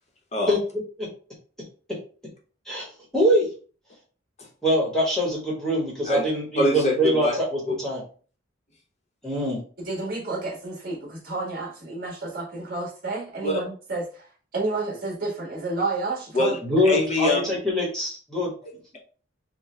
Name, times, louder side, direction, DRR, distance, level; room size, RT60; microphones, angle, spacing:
voice 1, 3.1-3.5 4.6-8.0 9.2-9.6 16.6-18.5, equal, 5° left, -5 dB, 1.2 m, -23 dB
voice 2, 6.1-7.4 7.7-7.8 13.4-13.6 16.3-16.6 16.8-17.5 18.6-19.0, left 2 dB, 35° left, 0 dB, 1.0 m, -25 dB
voice 3, 9.8-14.0 14.5-16.5, right 3 dB, 50° right, -2 dB, 1.6 m, -30 dB
4.6 x 2.3 x 3.2 m, 0.40 s
head